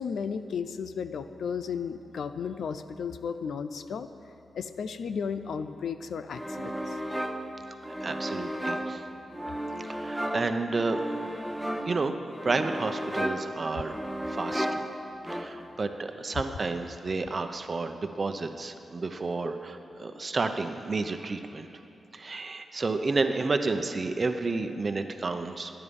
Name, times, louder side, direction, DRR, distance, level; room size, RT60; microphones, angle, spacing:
voice 1, 0.0-4.1 4.5-7.0, left 6 dB, 80° left, 10 dB, 0.6 m, -34 dB
sound 1, 6.3-15.8, equal, 5° right, 0.7 m, -34 dB
voice 2, 7.9-9.0 9.9-11.0 11.9-12.1 12.4-14.0 14.3-14.9 15.3-21.7 22.1-25.7, right 3 dB, 35° right, 7 dB, 0.9 m, -31 dB
21.0 x 10.0 x 5.4 m, 2.7 s
wide cardioid pair, 120°, 0 cm